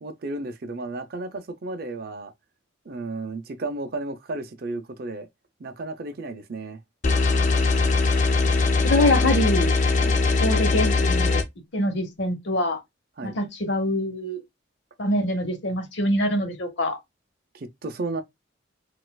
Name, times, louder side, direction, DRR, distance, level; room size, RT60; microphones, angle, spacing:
voice 1, 0.0-2.3 2.9-5.3 5.6-6.8 10.0-10.2 13.2-13.4 17.5-18.2, right 2 dB, 50° right, 0.5 m, -33 dB
sound 1, 7.0-11.4, left 3 dB, 40° left, 0.5 m, -21 dB
voice 2, 8.8-9.7 10.4-11.4 11.7-12.8 13.2-14.4 15.0-17.0, left 1 dB, 65° left, 0.9 m, -24 dB
4.1 x 2.4 x 2.2 m
head